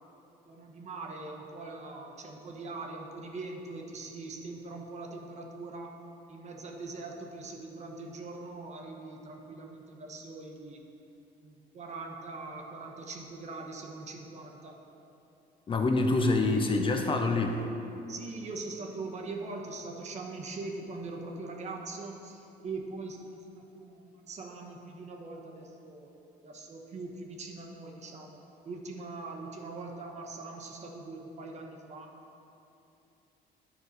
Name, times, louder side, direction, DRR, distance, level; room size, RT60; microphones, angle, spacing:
voice 1, 0.5-6.0 6.3-10.8 11.4-14.8 18.1-26.1 26.4-32.1, right 3 dB, 40° right, 1 dB, 1.0 m, -42 dB
voice 2, 15.7-17.6, left 2 dB, 30° left, 4 dB, 0.6 m, -26 dB
11.0 x 4.8 x 4.0 m, 2.9 s
cardioid pair, 110°, 17 cm